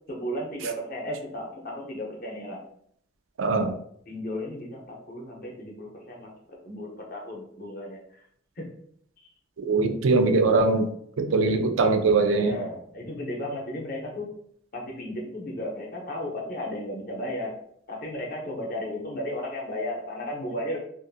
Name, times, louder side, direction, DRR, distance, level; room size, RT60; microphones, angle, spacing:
voice 1, 0.1-2.6 4.1-8.3 8.6-8.7 9.2-9.3 11.5-11.6 12.3-14.3 14.7-17.6 17.9-20.8, left 1 dB, 45° left, -1 dB, 0.7 m, -34 dB
voice 2, 3.4-3.7 9.6-10.9 11.2-12.6, right 3 dB, 90° right, 6 dB, 0.4 m, -21 dB
2.5 x 2.4 x 2.6 m, 0.68 s
head